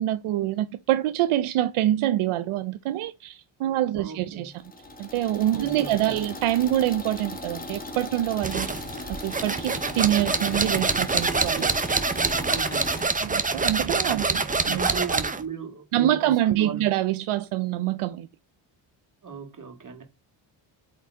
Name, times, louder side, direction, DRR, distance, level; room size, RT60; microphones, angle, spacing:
voice 1, 0.0-4.5 5.0-8.7 9.1-11.7 13.2-15.0 15.9-18.3, right 13 dB, 75° right, 0.6 m, -25 dB
voice 2, 4.0-4.5 5.5-6.2 12.5-13.0 14.0-16.9 19.2-20.0, right 5 dB, 40° right, 2.2 m, -37 dB
sound 1, 4.5-13.0, left 2 dB, 15° left, 1.7 m, -38 dB
sound 2, 8.4-15.4, right 4 dB, 15° right, 0.7 m, -26 dB
8.5 x 3.7 x 3.7 m
cardioid pair, 95°, 50 cm